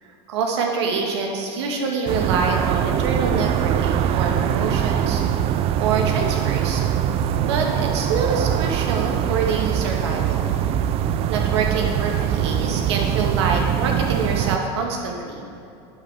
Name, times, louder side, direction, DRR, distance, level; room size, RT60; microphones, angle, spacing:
voice 1, 0.0-5.2 5.8-6.8 7.4-10.6 11.3-15.4, right 4 dB, 85° right, 1 dB, 1.8 m, -25 dB
sound 1, 2.1-14.6, right 10 dB, 45° right, 0.5 m, -22 dB
10.5 x 8.0 x 4.9 m, 2.7 s
supercardioid pair, 120°, 14 cm